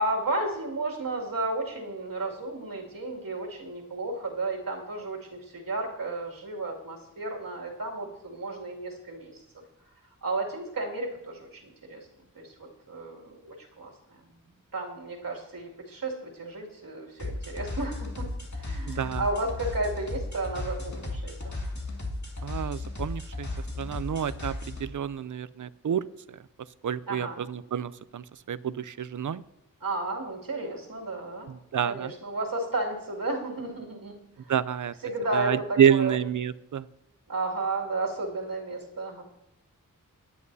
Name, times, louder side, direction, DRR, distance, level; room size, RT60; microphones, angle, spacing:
voice 1, 0.0-9.4 10.2-12.1 12.3-12.5 12.9-13.9 14.7-18.3 18.6-21.5 27.1-27.5 29.8-31.5 31.8-34.1 34.4-34.5 35.0-36.1 37.3-39.2, right 2 dB, 85° right, -2 dB, 2.5 m, -33 dB
sound 1, 17.2-24.9, left 2 dB, 55° left, 2.2 m, -35 dB
voice 2, 18.9-19.2 22.4-23.5 23.8-26.4 26.8-29.4 31.5-32.1 34.5-34.9 35.3-36.9, right 9 dB, 65° right, 17 dB, 0.5 m, -28 dB
19.0 x 9.9 x 2.8 m, 0.86 s
wide cardioid pair, 70°, 33 cm